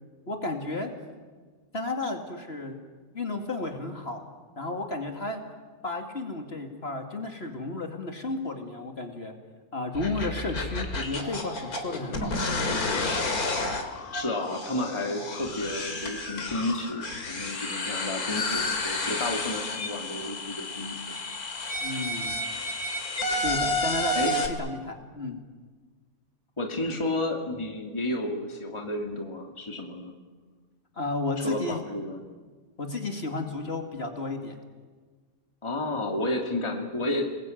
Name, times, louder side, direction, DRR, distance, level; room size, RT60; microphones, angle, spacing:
voice 1, 0.3-0.9 1.7-2.8 3.1-4.2 4.6-5.4 5.8-9.3 9.7-12.4 21.8-22.4 23.4-25.4 31.0-31.8 32.8-34.6, left 2 dB, 45° left, 4 dB, 2.6 m, -33 dB
sound 1, 9.9-24.5, left 2 dB, 80° left, 2.9 m, -31 dB
voice 2, 14.1-21.0 24.1-24.4 26.6-30.1 31.4-32.2 35.6-37.3, left 1 dB, 20° left, 2 dB, 2.2 m, -31 dB
30.0 x 21.0 x 9.1 m, 1.5 s
omnidirectional pair, 1.6 m